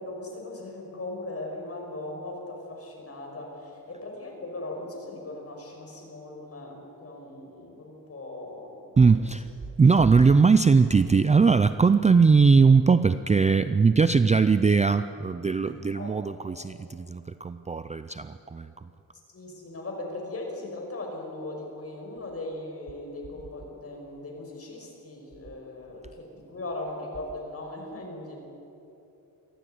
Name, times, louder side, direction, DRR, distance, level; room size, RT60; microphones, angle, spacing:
voice 1, 0.0-9.4 10.0-10.3 15.6-16.2 19.3-28.4, left 2 dB, 40° left, 0 dB, 5.7 m, -39 dB
voice 2, 9.0-9.4 9.8-18.7, right 4 dB, 20° right, 12 dB, 0.4 m, -20 dB
23.0 x 15.0 x 9.3 m, 2.9 s
wide cardioid pair, 125°, 37 cm